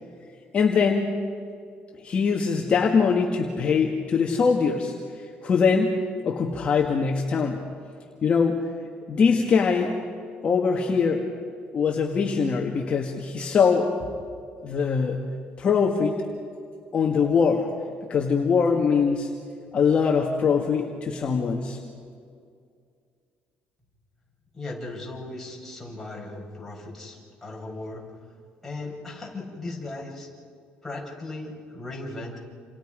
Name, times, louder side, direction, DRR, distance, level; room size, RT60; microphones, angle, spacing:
voice 1, 0.5-1.3 2.0-4.9 5.4-7.6 8.2-8.6 9.1-9.9 10.4-11.2 11.7-13.9 14.6-15.2 15.6-16.2 16.9-17.7 18.1-19.3 19.7-21.8, left 5 dB, 35° left, 0 dB, 1.7 m, -22 dB
voice 2, 24.5-28.1 28.6-30.3 30.8-32.4, left 2 dB, 5° left, -4 dB, 5.3 m, -37 dB
28.5 x 28.5 x 5.1 m, 2.3 s
cardioid pair, 150°, 3 cm